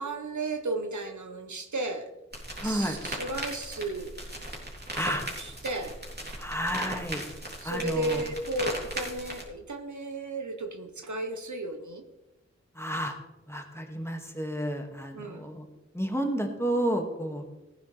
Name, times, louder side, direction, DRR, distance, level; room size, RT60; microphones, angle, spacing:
voice 1, 0.0-2.1 2.6-4.2 4.9-5.9 7.6-12.0 15.1-15.4, right 2 dB, 80° right, 5 dB, 1.1 m, -34 dB
sound 1, 2.3-9.4, right 1 dB, 35° right, 3.2 m, -38 dB
voice 2, 2.6-3.0 4.9-5.2 6.4-7.2 7.6-8.2 12.8-13.1 13.5-15.6 15.9-17.4, equal, 10° left, 3 dB, 2.0 m, -31 dB
15.5 x 9.6 x 3.4 m, 1.0 s
wide cardioid pair, 40°, 29 cm